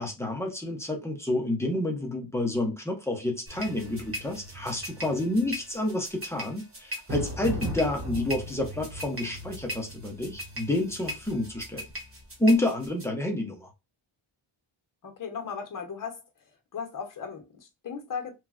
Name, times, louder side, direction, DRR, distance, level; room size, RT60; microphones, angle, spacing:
voice 1, 0.0-11.8 12.4-13.7, left 1 dB, 5° left, 0.6 m, -29 dB
sound 1, 3.5-13.0, equal, 25° right, 1.1 m, -37 dB
voice 2, 15.0-16.2 16.7-18.3, left 6 dB, 40° left, 0.9 m, -36 dB
3.1 x 2.3 x 2.4 m
wide cardioid pair, 140°, 49 cm